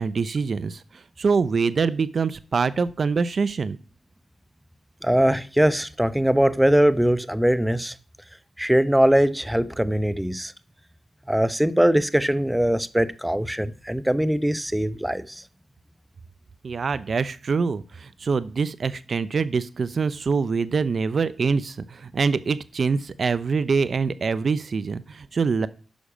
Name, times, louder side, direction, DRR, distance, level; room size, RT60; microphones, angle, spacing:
voice 1, 0.0-3.8 16.6-25.7, right 5 dB, 60° right, 0.5 m, -24 dB
voice 2, 5.0-7.9 8.6-10.5 11.3-15.4, equal, 5° right, 0.7 m, -21 dB
10.0 x 6.5 x 5.0 m
supercardioid pair, 45°, 0 cm